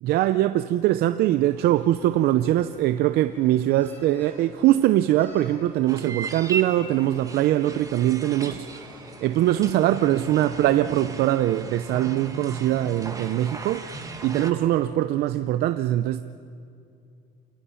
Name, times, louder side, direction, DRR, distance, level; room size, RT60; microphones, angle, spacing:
voice 1, 0.0-8.9 9.2-14.0 14.2-16.2, right 13 dB, 65° right, 0.7 m, -22 dB
sound 1, 1.5-14.8, right 1 dB, 10° left, 7.2 m, -45 dB
sound 2, 5.9-14.5, right 5 dB, 20° right, 1.6 m, -38 dB
28.0 x 19.5 x 5.8 m
cardioid pair, 125°, 18 cm